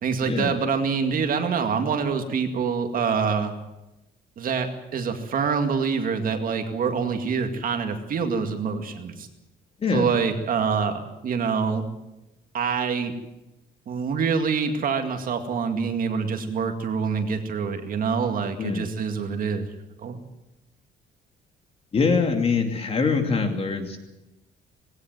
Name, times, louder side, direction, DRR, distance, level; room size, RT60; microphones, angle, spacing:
voice 1, 0.0-3.5 4.4-9.3 9.9-11.8 12.5-13.1 13.9-19.7 20.0-20.2, right 5 dB, 45° right, 6 dB, 2.2 m, -26 dB
voice 2, 9.8-10.2 18.6-18.9 21.9-24.0, left 4 dB, 30° left, 5 dB, 2.6 m, -24 dB
19.5 x 17.5 x 9.3 m, 0.94 s
cardioid pair, 175°, 20 cm